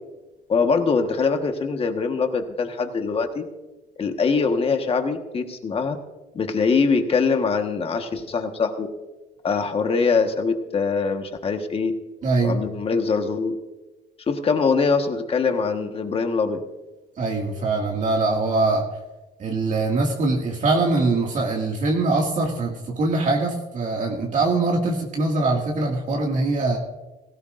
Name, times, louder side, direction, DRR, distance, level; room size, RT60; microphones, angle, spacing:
voice 1, 0.5-3.4 4.0-6.0 6.3-8.9 9.4-11.9 12.4-13.6 14.3-16.6, left 4 dB, 35° left, 5 dB, 1.5 m, -23 dB
voice 2, 12.2-12.6 17.2-18.9 19.4-26.8, right 3 dB, 50° right, -1 dB, 2.2 m, -22 dB
17.5 x 16.5 x 2.6 m, 1.1 s
cardioid pair, 110°, 17 cm